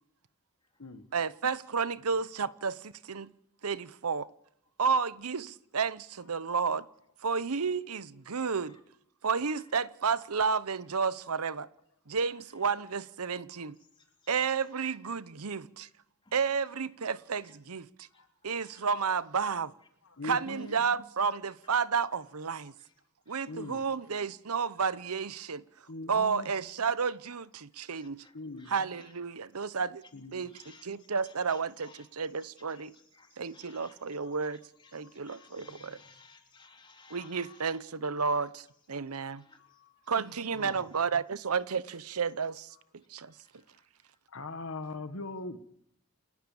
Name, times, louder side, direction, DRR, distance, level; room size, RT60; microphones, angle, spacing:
voice 1, 1.1-3.3 3.6-4.3 4.8-6.8 7.2-8.8 9.2-11.7 12.1-13.7 14.3-15.9 16.3-18.1 18.4-19.7 20.2-22.7 23.3-25.6 26.1-28.2 28.7-30.0 30.3-30.5 30.8-32.9 33.4-34.6 34.9-36.0 37.1-39.4 40.1-42.7 43.1-43.3, right 5 dB, 90° right, 0.9 m, -31 dB
voice 2, 18.1-18.9 23.3-23.4 23.7-23.8 27.9-29.1 30.5-30.9 31.3-32.1 32.7-33.9 34.8-37.8 39.4-39.6 40.5-40.8 43.4-43.9, left 3 dB, 20° left, 3.7 m, -56 dB
voice 3, 20.0-20.8 23.5-23.9 25.9-26.5 28.3-28.7 30.1-30.4 35.0-35.6 37.1-37.6 44.3-45.6, left 2 dB, 70° left, 1.4 m, -41 dB
29.5 x 12.5 x 7.2 m
head